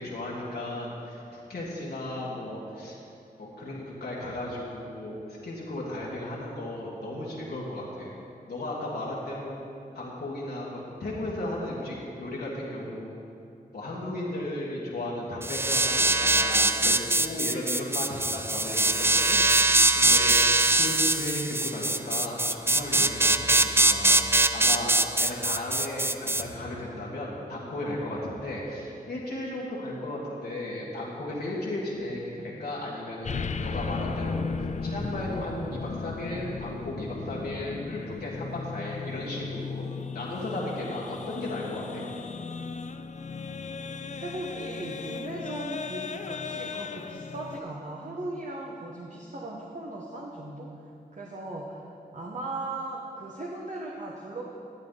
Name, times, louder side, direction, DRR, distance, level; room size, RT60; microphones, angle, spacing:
voice 1, 0.0-2.9 3.4-8.1 8.5-9.6 9.9-13.1 13.7-24.2 24.5-39.8 40.1-42.1, left 1 dB, 75° left, -6 dB, 1.7 m, -35 dB
sound 1, 15.4-26.4, right 2 dB, 15° right, 0.4 m, -22 dB
sound 2, 33.2-47.6, left 5 dB, 45° left, 0.4 m, -36 dB
voice 2, 44.2-50.7 51.1-51.8 52.1-54.5, right 2 dB, 50° right, -2 dB, 1.2 m, -37 dB
11.5 x 8.3 x 4.0 m, 2.7 s
cardioid pair, 45°, 16 cm